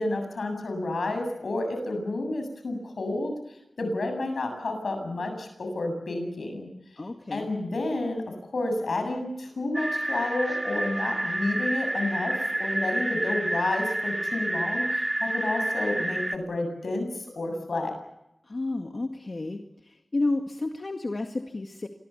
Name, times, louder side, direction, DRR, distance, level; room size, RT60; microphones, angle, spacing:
voice 1, 0.0-3.3 3.8-6.7 7.3-8.2 8.5-18.0, left 2 dB, 85° left, 6 dB, 7.5 m, -30 dB
voice 2, 7.0-7.5 18.5-21.9, left 2 dB, 55° left, 4 dB, 2.1 m, -31 dB
sound 1, 9.7-16.4, right 1 dB, 25° right, 2.0 m, -29 dB
26.5 x 21.5 x 7.1 m, 0.87 s
cardioid pair, 50°, 0 cm